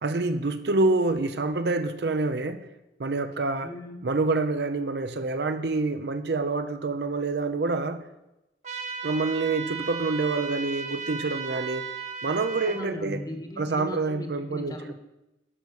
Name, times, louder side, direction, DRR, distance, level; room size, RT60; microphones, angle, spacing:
voice 1, 0.0-2.7 3.0-3.7 4.0-8.0 9.0-11.8 12.2-13.2 13.6-14.8, right 3 dB, 65° right, 9 dB, 0.6 m, -27 dB
voice 2, 3.6-4.1 12.7-14.9, left 1 dB, 20° left, 5 dB, 1.1 m, -38 dB
sound 1, 8.6-12.8, right 6 dB, 40° right, 1.2 m, -35 dB
11.5 x 5.5 x 6.4 m, 0.93 s
head